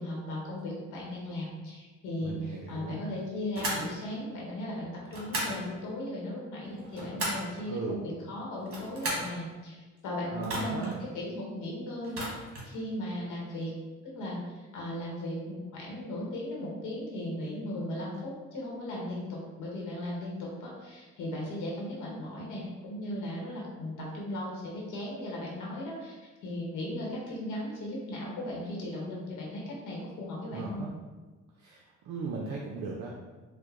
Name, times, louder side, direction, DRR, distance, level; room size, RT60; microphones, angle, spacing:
voice 1, 0.0-9.8 10.0-12.2 12.6-13.7 14.0-30.8, left 1 dB, 85° left, -4 dB, 0.9 m, -37 dB
voice 2, 2.2-3.0 7.7-8.0 10.3-11.0 30.5-30.9 31.6-33.3, right 4 dB, 70° right, -1 dB, 0.5 m, -37 dB
sound 1, 3.5-3.9 5.1-5.6 6.7-7.5 8.6-9.3 10.4-10.9 12.0-12.7, right 1 dB, 45° right, 1.1 m, -35 dB
4.5 x 2.1 x 2.5 m, 1.3 s
cardioid pair, 90°, 30 cm